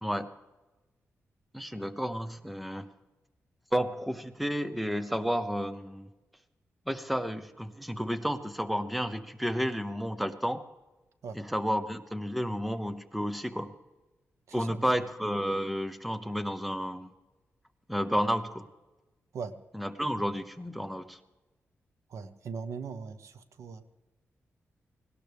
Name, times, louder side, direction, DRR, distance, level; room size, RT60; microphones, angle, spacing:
voice 1, 1.5-2.9 3.7-6.1 6.9-10.6 11.3-13.7 14.5-17.1 17.9-18.7 19.7-21.2, equal, ahead, 11 dB, 0.7 m, -31 dB
voice 2, 14.5-15.0 19.3-19.6 22.1-23.8, right 5 dB, 80° right, 10 dB, 1.1 m, -40 dB
18.5 x 18.5 x 3.5 m, 1.1 s
wide cardioid pair, 160°, 5 cm